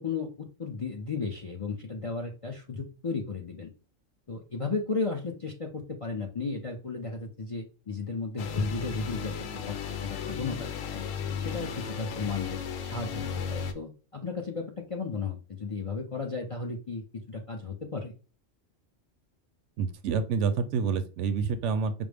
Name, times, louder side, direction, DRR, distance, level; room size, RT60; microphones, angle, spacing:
voice 1, 0.0-3.7 4.3-9.7 10.0-10.7 10.9-11.0 11.4-18.1, left 4 dB, 40° left, 1 dB, 0.5 m, -34 dB
sound 1, 8.4-13.7, left 6 dB, 90° left, 1.0 m, -35 dB
voice 2, 19.8-21.9, right 5 dB, 75° right, 10 dB, 0.9 m, -28 dB
5.2 x 2.1 x 3.3 m, 0.34 s
omnidirectional pair, 1.3 m